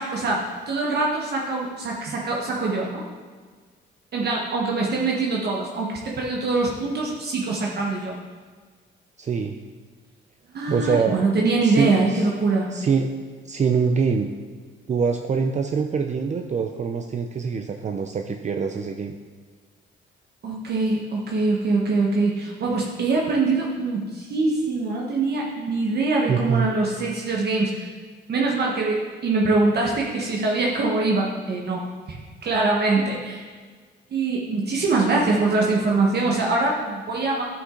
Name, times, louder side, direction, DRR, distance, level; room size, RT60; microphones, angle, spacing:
voice 1, 0.0-3.0 4.1-8.1 10.5-12.7 20.4-27.9 28.3-31.8 32.1-33.4 34.1-37.4, right 3 dB, 55° right, -2 dB, 1.3 m, -23 dB
voice 2, 9.2-9.6 10.7-11.2 11.6-12.3 12.7-13.1 13.4-14.3 14.9-19.2 26.3-26.7, right 5 dB, 35° right, 5 dB, 0.5 m, -24 dB
11.0 x 6.0 x 3.8 m, 1.5 s
cardioid pair, 90°, 20 cm